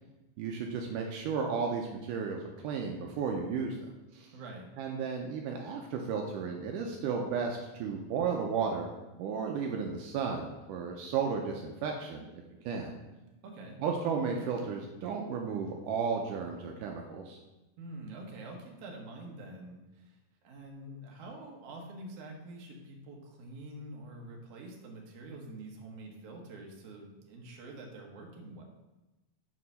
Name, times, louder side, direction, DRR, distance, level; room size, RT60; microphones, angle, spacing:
voice 1, 0.4-3.8 4.1-4.3 4.8-8.9 9.2-12.3 12.7-12.9 13.8-17.4, right 5 dB, 80° right, 1 dB, 2.1 m, -33 dB
voice 2, 4.3-4.7 13.4-13.8 17.8-28.6, right 2 dB, 60° right, 0 dB, 1.8 m, -46 dB
6.2 x 4.8 x 5.4 m, 1.0 s
omnidirectional pair, 3.9 m